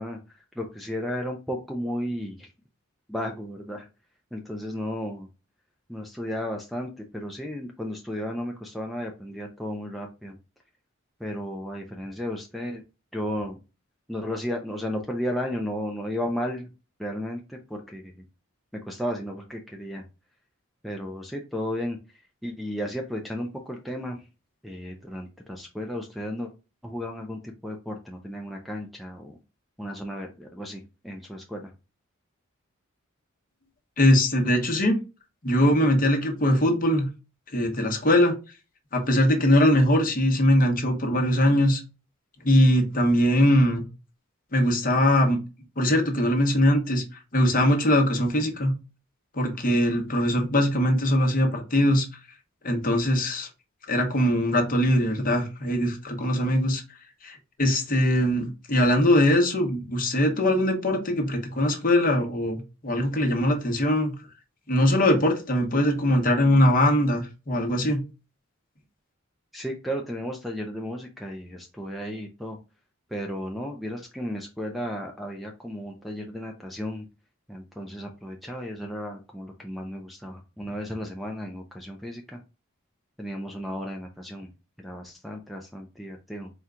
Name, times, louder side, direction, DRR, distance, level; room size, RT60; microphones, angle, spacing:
voice 1, 0.0-2.5 3.1-3.9 4.3-5.3 5.9-10.4 11.2-12.8 13.1-13.6 14.1-16.7 17.0-18.2 18.9-20.0 20.8-24.3 24.6-26.5 26.8-29.4 29.8-31.7 69.5-72.6 73.1-77.1 77.5-82.4 83.2-84.5 84.8-86.5, equal, ahead, 2 dB, 0.4 m, -34 dB
voice 2, 34.0-35.0 35.4-37.1 37.5-38.3 38.9-41.8 42.4-43.8 44.5-45.4 45.8-47.0 47.3-48.7 49.3-52.1 52.6-53.5 53.9-56.8 57.2-64.1 64.7-68.0, left 1 dB, 40° left, 3 dB, 0.9 m, -21 dB
4.3 x 2.3 x 3.6 m, 0.30 s
head